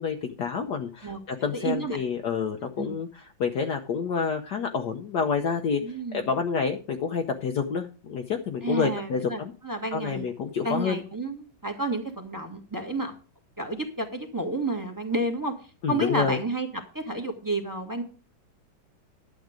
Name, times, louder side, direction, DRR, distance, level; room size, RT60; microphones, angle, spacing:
voice 1, 0.0-9.5 9.9-11.0 15.8-16.4, left 6 dB, 65° left, 4 dB, 1.4 m, -28 dB
voice 2, 1.5-2.0 2.8-2.9 5.8-6.3 8.6-10.2 10.6-13.1 13.6-15.5 15.9-18.0, right 2 dB, 10° right, 5 dB, 1.4 m, -30 dB
12.0 x 7.7 x 5.1 m, 0.36 s
omnidirectional pair, 2.1 m